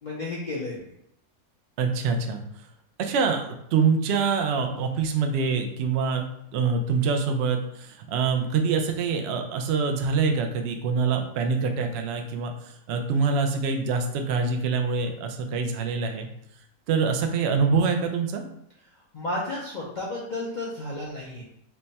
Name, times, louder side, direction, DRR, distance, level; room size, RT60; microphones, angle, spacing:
voice 1, 0.0-0.8 19.1-21.4, left 2 dB, 75° left, -5 dB, 0.4 m, -32 dB
voice 2, 1.8-2.4 3.0-6.2 6.5-12.5 12.9-16.3 16.9-18.4, right 5 dB, 75° right, 4 dB, 0.6 m, -25 dB
3.3 x 2.1 x 4.0 m, 0.75 s
omnidirectional pair, 1.7 m